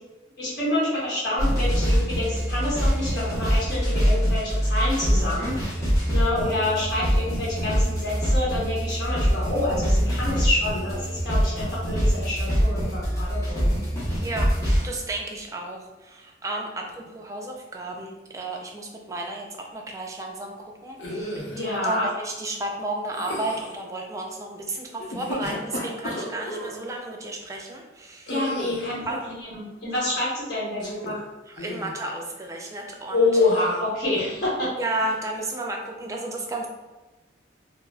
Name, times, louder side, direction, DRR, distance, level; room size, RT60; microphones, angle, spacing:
voice 1, 0.4-13.7 21.5-22.1 28.3-31.2 33.1-34.7, left 2 dB, 55° left, -9 dB, 1.0 m, -27 dB
sound 1, 1.4-14.9, equal, 20° left, 0.7 m, -24 dB
voice 2, 14.8-28.3 29.1-29.3 31.5-33.3 34.8-36.7, right 2 dB, 20° right, 1 dB, 0.3 m, -33 dB
sound 2, 21.0-21.6 23.1-23.8 25.0-26.7 28.3-29.0 30.7-31.2 31.6-32.0 33.3-33.8, equal, 80° left, 0.7 m, -33 dB
3.8 x 2.0 x 2.2 m, 1.1 s
head